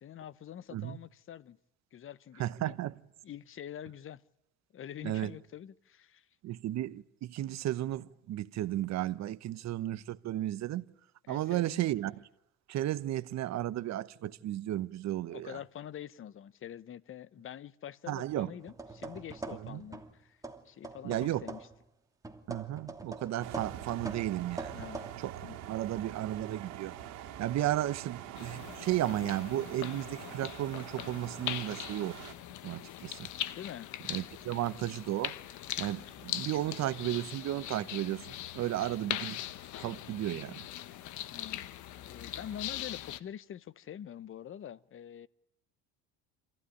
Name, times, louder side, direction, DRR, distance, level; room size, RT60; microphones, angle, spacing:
voice 1, 0.0-1.6 1.9-2.8 3.2-4.2 4.7-6.3 11.3-11.8 15.3-20.4 20.6-21.7 24.7-25.0 25.4-25.6 33.6-34.0 40.8-41.0 41.3-41.7 42.0-45.3, left 10 dB, 40° left, 0.9 m, -45 dB
voice 2, 2.4-2.9 5.0-5.3 6.4-10.9 11.3-12.2 12.7-15.6 18.1-18.5 19.6-19.8 21.0-21.5 22.5-24.8 25.2-25.4 25.7-26.9 27.4-32.2 32.6-33.3 34.1-35.3 35.8-39.4 39.8-40.6, right 13 dB, 55° right, 1.1 m, -34 dB
sound 1, 18.6-20.2 20.4-21.8 22.2-25.1, right 3 dB, 10° right, 2.6 m, -44 dB
sound 2, 23.4-32.3, right 11 dB, 70° right, 2.5 m, -45 dB
sound 3, 28.3-43.2, left 13 dB, 65° left, 1.2 m, -41 dB
27.0 x 15.5 x 10.0 m
supercardioid pair, 80°, 33 cm